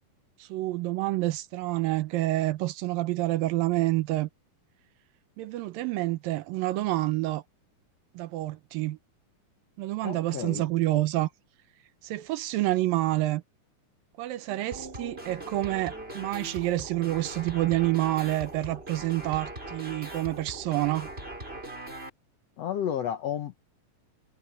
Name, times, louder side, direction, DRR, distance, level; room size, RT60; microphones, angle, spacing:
voice 1, 0.4-4.3 5.4-7.4 8.1-9.0 9.8-11.3 12.0-13.4 14.2-21.1, right 17 dB, 75° right, 2.5 m, -28 dB
voice 2, 10.0-10.6 22.6-23.6, left 10 dB, 75° left, 1.5 m, -32 dB
sound 1, 14.7-22.1, right 1 dB, 15° right, 6.0 m, -40 dB
omnidirectional pair, 4.3 m